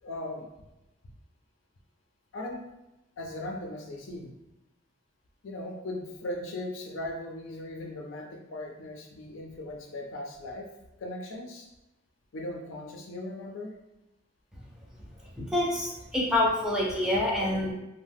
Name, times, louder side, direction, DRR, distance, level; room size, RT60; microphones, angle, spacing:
voice 1, 0.0-0.5 2.3-2.6 3.2-4.4 5.4-10.7 11.0-11.7 12.3-13.7, left 1 dB, 75° left, 1 dB, 0.5 m, -38 dB
voice 2, 15.4-17.7, left 1 dB, 5° right, -4 dB, 0.5 m, -27 dB
2.7 x 2.1 x 3.4 m, 0.95 s
head